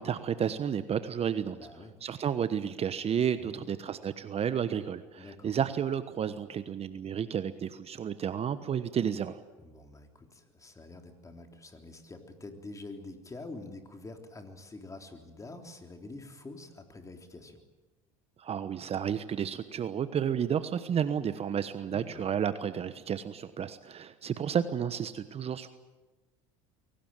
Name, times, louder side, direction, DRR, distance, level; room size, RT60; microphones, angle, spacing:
voice 1, 0.0-1.6 2.0-9.4 18.4-25.7, right 8 dB, 35° right, 12 dB, 1.2 m, -31 dB
voice 2, 1.5-2.0 3.4-3.6 5.2-5.5 9.6-17.6 21.9-22.3, left 2 dB, 20° left, 5 dB, 3.6 m, -46 dB
23.5 x 18.5 x 9.1 m, 1.2 s
hypercardioid pair, 80°, 17 cm